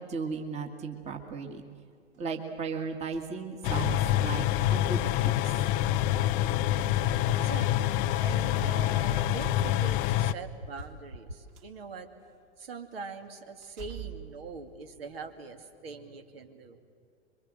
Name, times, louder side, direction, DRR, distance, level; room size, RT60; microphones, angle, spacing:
voice 1, 0.0-1.6 2.2-5.3, right 4 dB, 20° right, 4 dB, 2.0 m, -36 dB
sound 1, 1.1-1.2 3.1-4.6 5.5-5.7 7.6-7.7 8.6-8.8 9.0-11.6 12.3-12.4 12.9-13.0 13.6-15.4, right 9 dB, 40° right, 4.3 m, -46 dB
sound 2, 3.6-10.3, left 13 dB, 25° left, 0.5 m, -26 dB
sound 3, 6.6-6.8 7.1-7.3 7.6-7.8 8.1-8.3 8.6-8.8 9.1-9.3 9.6-9.8 10.1-10.3 10.6-10.8 11.1-11.3, right 1 dB, 80° right, 2.1 m, -39 dB
voice 2, 7.3-12.1 12.6-16.8, right 4 dB, 60° right, 6 dB, 2.5 m, -43 dB
26.0 x 23.5 x 7.8 m, 2.3 s
figure-of-eight pair, 115°, 35 cm